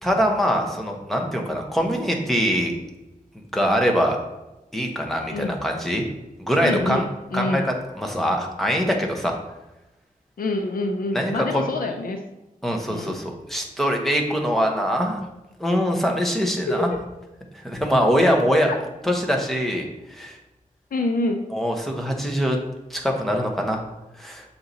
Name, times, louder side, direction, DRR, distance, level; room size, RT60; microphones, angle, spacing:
voice 1, 0.0-2.7 3.5-4.2 4.7-6.0 6.4-7.0 7.3-9.4 11.1-11.7 12.6-15.2 15.6-16.9 17.5-18.7 19.0-20.4 21.5-22.6 22.9-23.8 24.2-24.4, equal, ahead, 1 dB, 1.0 m, -23 dB
voice 2, 6.6-7.7 10.4-12.2 12.9-13.2 16.7-17.0 18.7-18.8 20.9-21.4, left 2 dB, 85° left, 4 dB, 0.6 m, -26 dB
6.6 x 4.3 x 4.0 m, 0.99 s
wide cardioid pair, 120°, 14 cm